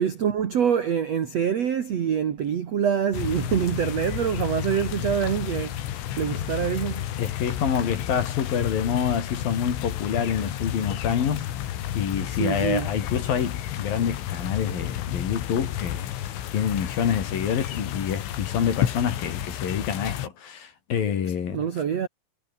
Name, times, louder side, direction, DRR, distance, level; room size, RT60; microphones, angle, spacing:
voice 1, 0.0-5.7 6.1-7.0 12.4-12.9 21.5-22.1, right 8 dB, 75° right, 1.5 m, -25 dB
sound 1, 3.1-20.3, left 12 dB, 80° left, 4.7 m, -31 dB
voice 2, 7.2-11.6 11.9-16.1 16.5-21.7, left 8 dB, 50° left, 4.0 m, -27 dB
omnidirectional pair, 5.7 m